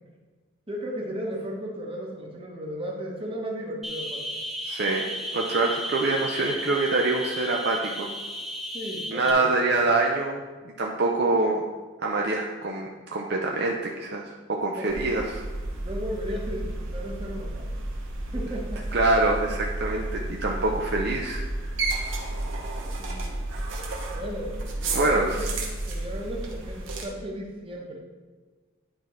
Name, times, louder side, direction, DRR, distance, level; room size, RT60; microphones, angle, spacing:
voice 1, 0.7-4.2 8.7-9.5 14.7-14.9 15.8-17.8 18.3-18.8 20.6-20.7 23.0-23.3 24.1-25.4 25.9-28.0, equal, 25° right, -1 dB, 1.1 m, -35 dB
sound 1, 3.8-9.3, equal, ahead, 0.5 m, -34 dB
voice 2, 4.6-5.0 5.3-8.1 9.1-10.4 10.8-11.6 12.0-14.3 14.6-15.4 18.9-21.7 24.9-25.5, right 2 dB, 50° right, 0 dB, 0.5 m, -25 dB
sound 2, 14.9-27.0, right 2 dB, 65° right, 1.2 m, -32 dB
10.5 x 4.4 x 3.1 m, 1.4 s
head